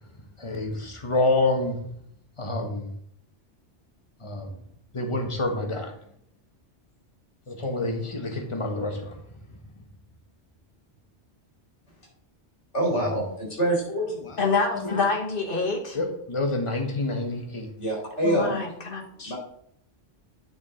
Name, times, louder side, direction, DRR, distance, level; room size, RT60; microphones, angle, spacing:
voice 1, 0.4-1.7 2.4-2.9 4.2-4.5 4.9-5.9 7.5-9.2 12.9-13.2 14.2-15.1 15.9-17.7, left 2 dB, 25° left, 4 dB, 1.2 m, -28 dB
voice 2, 12.7-14.1 17.8-18.6 19.2-19.4, right 1 dB, 90° left, -3 dB, 3.1 m, -25 dB
voice 3, 14.4-16.0 18.2-19.3, left 4 dB, 50° left, 2 dB, 1.6 m, -27 dB
9.4 x 4.8 x 3.7 m, 0.69 s
omnidirectional pair, 1.2 m